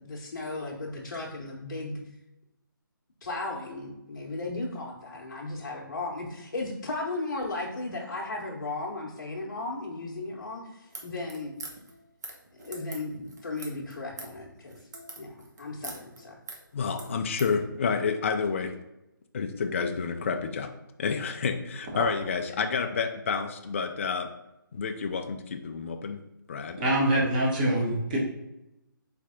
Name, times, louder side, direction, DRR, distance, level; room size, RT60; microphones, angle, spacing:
voice 1, 0.0-2.0 3.2-11.5 12.6-14.8 15.2-16.4, left 2 dB, 55° left, -5 dB, 0.8 m, -35 dB
sound 1, 10.8-17.5, right 2 dB, 50° right, 0.9 m, -44 dB
voice 2, 16.7-18.7 19.3-20.7 21.0-24.3 24.7-26.2 26.5-26.8 27.1-27.3, left 5 dB, 35° left, 6 dB, 0.3 m, -29 dB
voice 3, 26.8-28.2, right 1 dB, 25° right, -3 dB, 0.9 m, -24 dB
4.2 x 3.2 x 3.7 m, 0.92 s
figure-of-eight pair, 160°, 12 cm